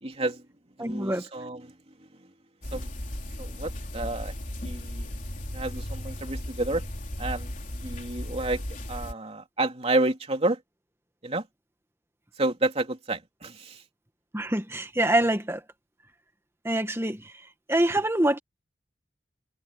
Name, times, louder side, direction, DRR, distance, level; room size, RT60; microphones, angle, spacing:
voice 1, 0.0-0.4 0.8-1.7 2.7-2.9 3.4-4.3 4.6-5.1 5.5-6.8 7.2-7.5 7.8-8.6 8.9-10.6 11.2-11.5 12.4-13.8, right 2 dB, 35° right, 3.2 m, -30 dB
voice 2, 0.8-1.3 14.3-15.6 16.6-17.3 17.7-18.4, right 1 dB, 15° right, 1.8 m, -25 dB
sound 1, 2.6-9.1, left 1 dB, 45° left, 3.7 m, -36 dB
head